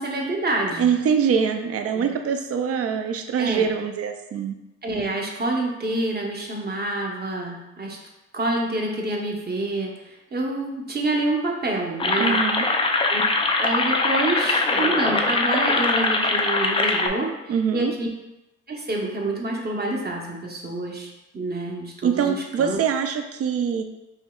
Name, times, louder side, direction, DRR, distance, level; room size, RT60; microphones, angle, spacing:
voice 1, 0.0-0.9 1.9-2.1 3.4-3.7 4.8-8.0 8.3-9.9 10.3-12.4 13.1-13.2 13.6-18.1 18.7-21.1 21.3-22.8, right 2 dB, 30° right, -1 dB, 0.9 m, -27 dB
voice 2, 0.8-4.5 12.2-12.7 17.5-17.9 22.0-23.8, right 7 dB, 50° right, 6 dB, 0.5 m, -23 dB
sound 1, 12.0-17.1, left 3 dB, 20° left, 0.4 m, -22 dB
5.4 x 2.7 x 2.3 m, 0.96 s
cardioid pair, 90°, 30 cm